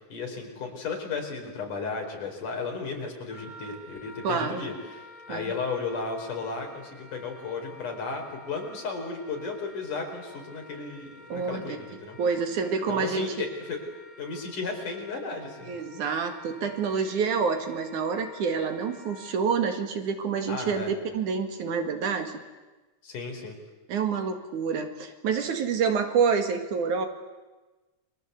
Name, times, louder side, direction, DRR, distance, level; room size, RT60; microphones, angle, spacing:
voice 1, 0.1-5.0 5.3-12.2 12.9-13.8 14.2-15.7 20.5-20.9 23.0-23.6, left 4 dB, 75° left, 2 dB, 6.0 m, -34 dB
Wind instrument woodwind instrument, 3.3-19.3, left 2 dB, 15° left, 4.2 m, -50 dB
voice 2, 4.2-4.6 5.3-5.5 11.3-11.8 12.2-13.3 15.6-22.4 23.9-27.1, right 5 dB, 70° right, 6 dB, 3.4 m, -27 dB
29.5 x 23.5 x 8.2 m, 1.2 s
omnidirectional pair, 3.7 m